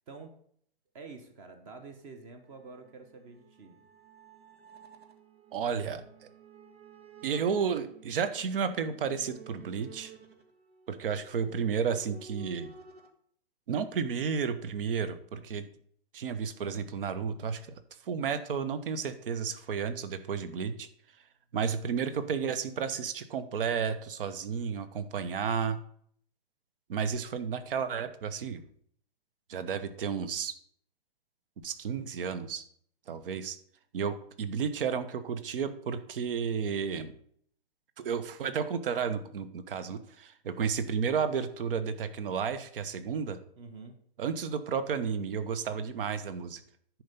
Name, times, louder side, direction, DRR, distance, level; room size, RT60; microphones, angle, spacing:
voice 1, 0.9-3.8 43.6-44.0, right 4 dB, 35° right, 6 dB, 1.1 m, -48 dB
sound 1, 2.4-13.1, right 5 dB, 90° right, 1.7 m, -53 dB
voice 2, 5.5-6.3 7.2-10.1 10.9-12.7 13.7-15.7 16.1-17.6 18.0-20.9 21.5-25.8 26.9-28.6 29.5-30.5 31.6-32.6 33.1-33.6 33.9-37.1 38.0-43.4 44.2-46.6, right 6 dB, 60° right, 12 dB, 1.0 m, -32 dB
10.5 x 4.6 x 5.4 m, 0.62 s
hypercardioid pair, 145°, 31 cm